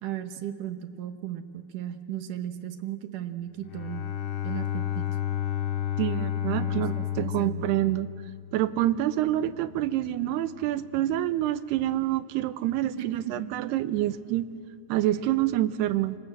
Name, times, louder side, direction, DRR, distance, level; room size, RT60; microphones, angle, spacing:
voice 1, 0.0-4.1 4.4-5.1 6.5-7.7 13.0-13.5, right 11 dB, 65° right, 9 dB, 2.4 m, -36 dB
Bowed string instrument, 3.6-8.6, left 11 dB, 80° left, 4.2 m, -31 dB
voice 2, 6.0-8.1 8.5-14.5 14.9-16.2, right 13 dB, 90° right, 14 dB, 2.9 m, -27 dB
28.5 x 26.0 x 7.8 m, 2.1 s
omnidirectional pair, 4.5 m